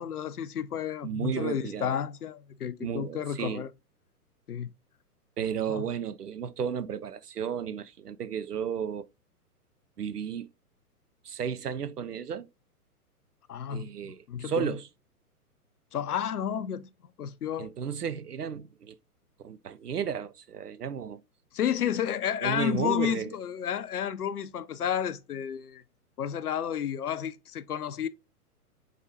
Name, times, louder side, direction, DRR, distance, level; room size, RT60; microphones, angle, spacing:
voice 1, 0.0-3.7 4.5-4.7 5.7-5.8 13.5-14.8 15.9-16.9 17.2-17.7 21.5-25.8 26.2-28.1, left 9 dB, 75° left, 0.6 m, -31 dB
voice 2, 1.0-2.0 2.8-3.6 5.4-9.1 10.0-10.5 11.2-12.5 13.7-14.9 17.6-19.0 19.4-21.2 22.4-23.3, right 7 dB, 90° right, 0.5 m, -33 dB
4.8 x 4.1 x 2.6 m
figure-of-eight pair, 115°, 46 cm